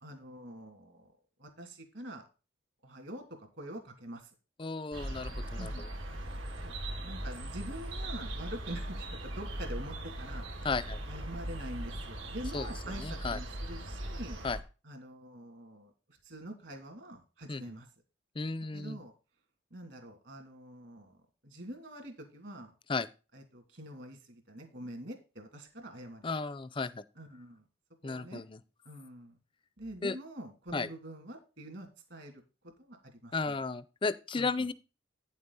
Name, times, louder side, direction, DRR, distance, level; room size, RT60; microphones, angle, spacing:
voice 1, 0.0-1.1 1.4-2.2 2.8-4.3 5.6-5.9 6.6-6.7 7.0-10.5 11.0-14.4 14.8-17.9 18.7-19.1 19.7-21.2 21.4-22.7 23.3-26.3 27.2-27.6 28.0-28.4 28.8-29.4 29.8-33.6 34.3-34.7, right 1 dB, 60° right, 4 dB, 2.6 m, -45 dB
voice 2, 4.6-5.7 10.6-11.0 12.5-12.7 12.9-13.4 14.4-14.6 17.5-17.6 18.4-19.0 22.9-23.1 26.2-27.0 28.0-28.6 30.0-30.1 30.7-30.9 33.3-34.7, left 4 dB, 25° left, 17 dB, 0.5 m, -34 dB
sound 1, 4.9-14.6, right 1 dB, 80° right, 2.1 m, -39 dB
9.4 x 7.3 x 4.0 m, 0.32 s
head